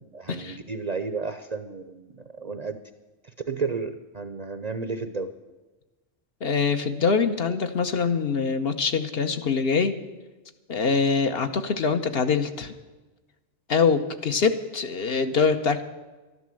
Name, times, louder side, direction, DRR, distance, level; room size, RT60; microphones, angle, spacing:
voice 1, 0.0-2.8 3.2-5.3, right 4 dB, 45° right, 9 dB, 0.6 m, -32 dB
voice 2, 6.4-9.9 10.7-12.7 13.7-15.8, left 5 dB, 55° left, 7 dB, 1.0 m, -24 dB
12.5 x 11.0 x 7.5 m, 1.2 s
omnidirectional pair, 1.3 m